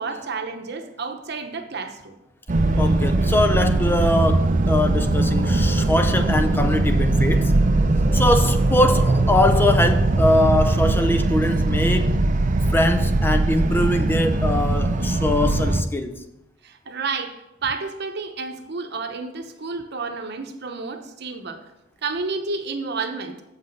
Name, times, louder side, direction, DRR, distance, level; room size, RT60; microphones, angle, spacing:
voice 1, 0.0-2.2 8.1-8.2 16.6-21.6 22.0-23.4, right 4 dB, 60° right, 0.9 m, -30 dB
sound 1, 2.5-15.8, right 2 dB, 40° right, 0.6 m, -20 dB
voice 2, 2.8-7.5 8.1-12.2 12.7-16.2, left 1 dB, 10° left, 0.4 m, -22 dB
7.5 x 5.8 x 5.2 m
head